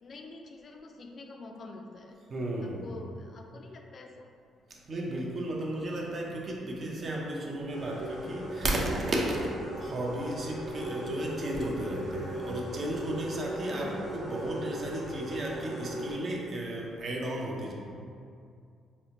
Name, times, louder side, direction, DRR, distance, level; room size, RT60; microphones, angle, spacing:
voice 1, 0.0-2.2 2.6-4.3 13.7-14.1, left 3 dB, 50° left, 3 dB, 0.3 m, -46 dB
voice 2, 2.3-2.9 4.7-17.7, right 1 dB, 45° right, -2 dB, 0.6 m, -34 dB
sound 1, 7.7-16.1, right 1 dB, 80° right, 1.1 m, -38 dB
4.2 x 2.1 x 2.8 m, 2.4 s
cardioid pair, 90°, 0 cm